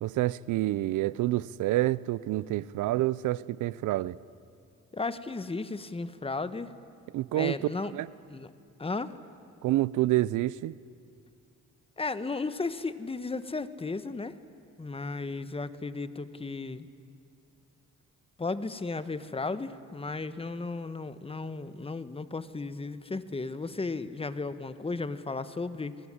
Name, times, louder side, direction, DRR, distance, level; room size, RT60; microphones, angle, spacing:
voice 1, 0.0-4.2 7.1-7.6 7.9-8.1 9.6-10.7, right 16 dB, 85° right, 20 dB, 0.6 m, -28 dB
voice 2, 4.9-6.7 7.3-7.9 8.3-8.5 8.8-9.1 12.0-14.3 14.8-16.9 18.4-26.0, left 3 dB, 20° left, 12 dB, 1.3 m, -34 dB
27.0 x 20.0 x 10.0 m, 2.3 s
cardioid pair, 90°, 30 cm